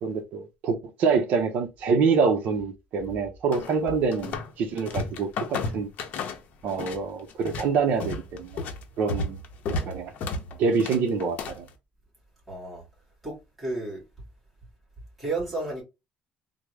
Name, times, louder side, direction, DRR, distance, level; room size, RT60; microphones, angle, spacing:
voice 1, 0.0-5.9 6.6-8.6 9.0-9.4 9.7-10.1 10.6-11.7, right 5 dB, 55° right, 0.6 m, -26 dB
sound 1, 3.5-4.5 4.8-7.0 7.3-11.7, left 3 dB, 55° left, 0.6 m, -33 dB
voice 2, 12.5-12.8 13.2-14.0 15.2-15.8, right 2 dB, 5° right, 2.1 m, -32 dB
3.5 x 2.0 x 3.2 m
cardioid pair, 165°, 3 cm